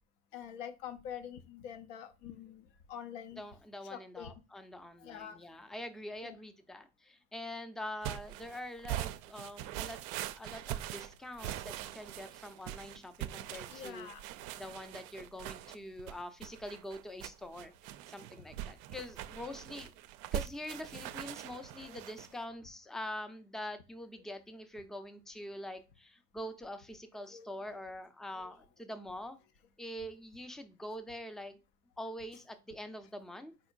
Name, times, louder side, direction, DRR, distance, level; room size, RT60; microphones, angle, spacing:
voice 1, 0.3-3.4 3.9-4.3 5.0-5.4 6.2-6.4 11.4-11.6 13.7-14.3 21.8-22.0 27.3-27.5 28.3-28.4, left 9 dB, 60° left, 0.7 m, -46 dB
voice 2, 3.4-10.0 10.3-14.1 14.6-19.9 20.3-29.4 29.8-31.6 32.0-33.5, left 1 dB, ahead, 0.5 m, -44 dB
sound 1, 8.0-22.4, right 13 dB, 60° right, 0.5 m, -42 dB
4.2 x 4.0 x 2.4 m
hypercardioid pair, 65°, 36 cm